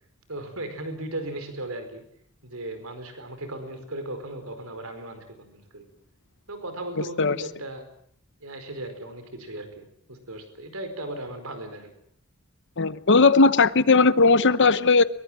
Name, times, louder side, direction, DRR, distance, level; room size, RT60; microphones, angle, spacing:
voice 1, 0.3-2.0 2.4-5.9 6.5-7.9 8.4-11.9, right 1 dB, 70° right, 8 dB, 4.8 m, -37 dB
voice 2, 12.8-15.0, left 4 dB, 55° left, 14 dB, 1.0 m, -17 dB
23.0 x 23.0 x 7.5 m, 0.64 s
head